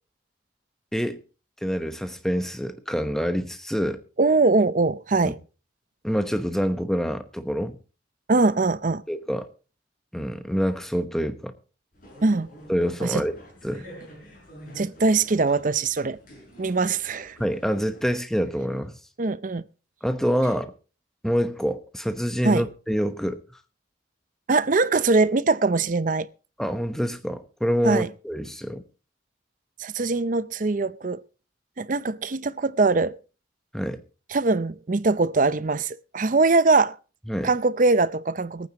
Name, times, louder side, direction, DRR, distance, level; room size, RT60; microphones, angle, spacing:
voice 1, 1.6-4.0 5.2-5.3 6.0-7.8 9.1-9.5 10.1-11.5 12.7-13.4 13.6-13.9 17.4-18.9 20.0-20.7 21.2-23.4 26.6-28.8 33.7-34.0 37.3-37.5, equal, ahead, 1.0 m, -26 dB
voice 2, 4.2-5.4 8.3-9.0 12.2-12.5 13.0-13.2 14.8-16.2 16.6-17.4 19.2-19.6 22.4-22.7 24.5-26.3 27.8-28.1 29.8-31.2 31.8-33.2 34.3-37.0 37.4-38.7, right 3 dB, 45° right, 0.6 m, -22 dB
sound 1, 11.9-18.1, equal, 45° left, 7.4 m, -47 dB
24.5 x 9.1 x 3.0 m
head